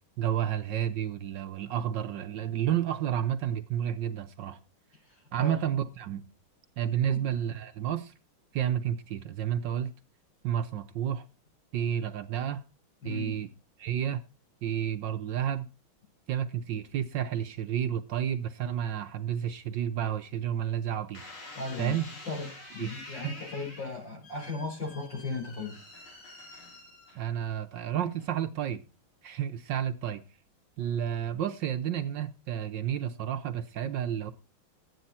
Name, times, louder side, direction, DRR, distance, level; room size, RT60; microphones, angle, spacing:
voice 1, 0.2-4.6 5.3-6.2 6.8-8.1 8.5-9.9 10.4-11.2 11.7-12.6 13.0-13.5 13.8-14.2 14.6-15.7 16.3-21.2 21.8-22.1 22.8-23.3 27.1-28.8 29.2-30.2 30.8-34.3, right 10 dB, 65° right, 1.4 m, -31 dB
voice 2, 5.1-5.6 7.1-7.3 13.0-13.4 21.6-22.0 22.3-25.8, left 4 dB, 60° left, 5.4 m, -37 dB
sound 1, 21.1-27.5 28.2-28.7, left 2 dB, 80° left, 4.5 m, -47 dB
13.0 x 9.4 x 4.2 m
omnidirectional pair, 2.3 m